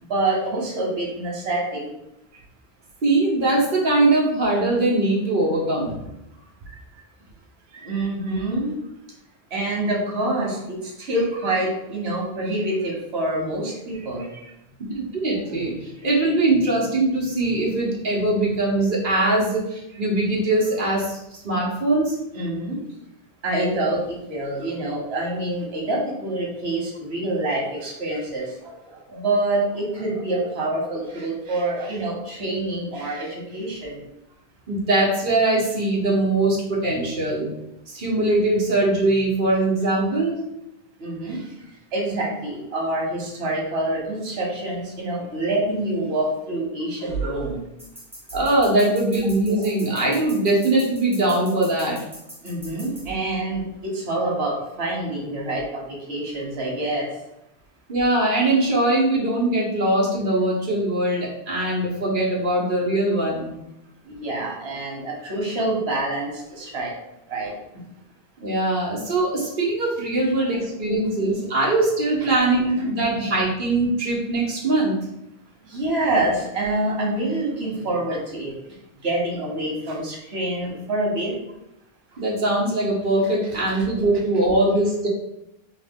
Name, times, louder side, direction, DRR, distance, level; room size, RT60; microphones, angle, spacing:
voice 1, 0.1-1.9 6.7-6.8 7.7-8.8 9.5-14.4 22.3-22.8 23.4-34.0 41.0-41.4 41.9-47.6 52.4-57.1 64.1-66.9 67.3-67.5 75.6-78.5 79.0-81.3 83.7-83.9, right 2 dB, 90° right, -1 dB, 1.3 m, -26 dB
voice 2, 3.0-5.9 15.0-21.2 21.4-22.1 34.7-37.5 37.9-40.4 48.3-52.0 57.9-63.5 68.4-74.9 82.2-85.1, right 2 dB, 55° right, -4 dB, 1.2 m, -21 dB
sound 1, 47.8-53.0, equal, 20° right, 1.4 m, -42 dB
3.2 x 2.9 x 3.5 m, 0.86 s
omnidirectional pair, 1.0 m